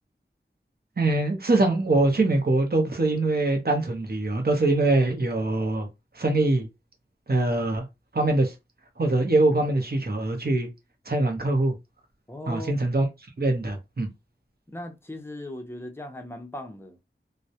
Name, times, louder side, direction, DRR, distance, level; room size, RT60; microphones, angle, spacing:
voice 1, 1.0-5.9 6.1-6.7 7.3-7.8 8.1-8.5 9.0-10.7 11.1-11.7 12.5-13.1 13.4-14.1, right 2 dB, 50° right, 0.7 m, -23 dB
voice 2, 12.3-12.7 14.7-17.0, left 1 dB, 10° left, 0.5 m, -38 dB
2.2 x 2.0 x 2.7 m
wide cardioid pair, 50°, 21 cm